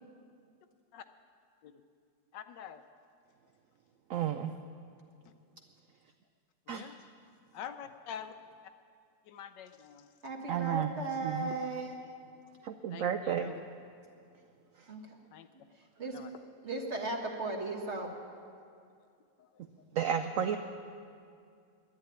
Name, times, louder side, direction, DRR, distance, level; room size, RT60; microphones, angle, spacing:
voice 1, 2.3-2.8 6.7-7.0 7.5-8.3 9.3-10.1 12.9-13.6 15.3-15.5 16.1-16.4 19.4-19.5, left 8 dB, 75° left, 10 dB, 1.3 m, -45 dB
voice 2, 4.1-4.5 6.7-6.9 10.5-10.9 11.2-11.5 12.6-13.5 19.9-20.6, right 9 dB, 75° right, 8 dB, 0.7 m, -32 dB
voice 3, 10.2-12.0 14.9-15.1 16.0-16.3 16.6-18.1, right 2 dB, 40° right, 1 dB, 1.5 m, -36 dB
11.0 x 9.6 x 10.0 m, 2.3 s
omnidirectional pair, 1.9 m